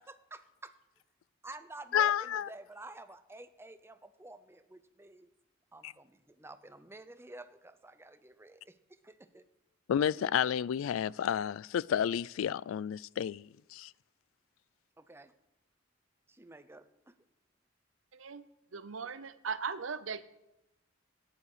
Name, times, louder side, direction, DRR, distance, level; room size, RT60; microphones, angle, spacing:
voice 1, 0.1-0.7 1.4-5.3 5.7-9.5 15.0-15.3 16.3-17.3, right 2 dB, 15° right, 0.7 m, -51 dB
voice 2, 1.9-2.5 5.8-5.9 9.9-13.9, left 9 dB, 90° left, 0.3 m, -31 dB
voice 3, 18.1-18.4 18.7-20.2, right 5 dB, 80° right, 0.7 m, -38 dB
13.5 x 10.0 x 4.9 m
head